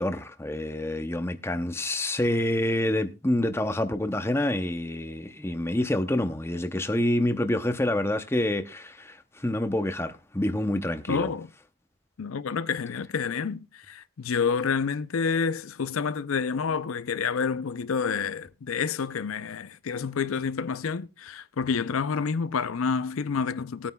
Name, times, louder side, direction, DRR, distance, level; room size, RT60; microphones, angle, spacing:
voice 1, 0.0-11.3, left 1 dB, 10° left, 0.6 m, -27 dB
voice 2, 11.1-11.5 12.2-13.6 13.9-23.9, left 5 dB, 85° left, 0.5 m, -28 dB
19.5 x 9.3 x 2.2 m
head